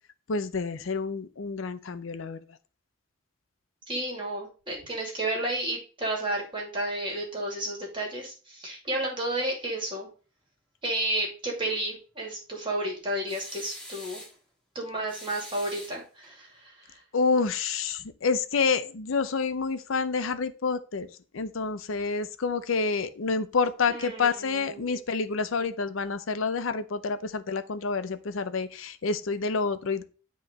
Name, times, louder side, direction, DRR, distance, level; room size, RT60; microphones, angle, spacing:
voice 1, 0.3-2.4 17.1-21.1 21.3-30.0, left 4 dB, 80° left, 11 dB, 0.6 m, -28 dB
voice 2, 3.9-10.1 10.8-14.2 14.7-17.0 23.9-25.0, right 1 dB, 25° right, -1 dB, 2.5 m, -32 dB
sound 1, 13.3-14.4 15.1-16.3, left 1 dB, 5° left, 1.8 m, -44 dB
7.9 x 3.1 x 5.1 m, 0.36 s
head